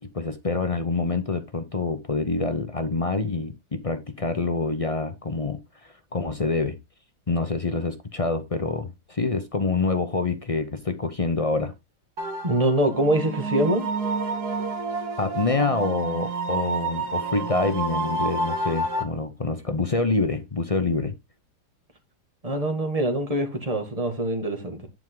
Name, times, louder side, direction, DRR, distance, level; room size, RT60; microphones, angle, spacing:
voice 1, 0.1-6.8 7.3-11.7 15.2-21.2, left 3 dB, 50° left, 0.4 m, -26 dB
sound 1, 12.2-19.0, right 3 dB, 55° right, 2.0 m, -29 dB
voice 2, 12.4-13.9 22.4-24.9, right 1 dB, 20° right, 2.1 m, -24 dB
11.0 x 5.2 x 3.8 m
omnidirectional pair, 2.0 m